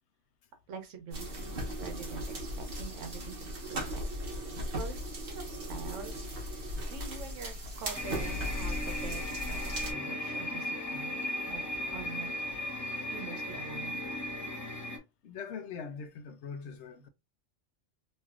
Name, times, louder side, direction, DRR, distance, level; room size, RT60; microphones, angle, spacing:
voice 1, 0.7-4.0 4.8-11.2 11.5-11.7 11.9-12.3 13.1-14.0, right 6 dB, 80° right, 1.1 m, -45 dB
sound 1, 1.1-9.9, equal, 50° right, 1.0 m, -37 dB
sound 2, 7.9-15.0, left 1 dB, 25° left, 0.5 m, -36 dB
voice 2, 15.2-17.1, left 6 dB, 70° left, 0.9 m, -42 dB
3.1 x 2.7 x 2.3 m
omnidirectional pair, 1.3 m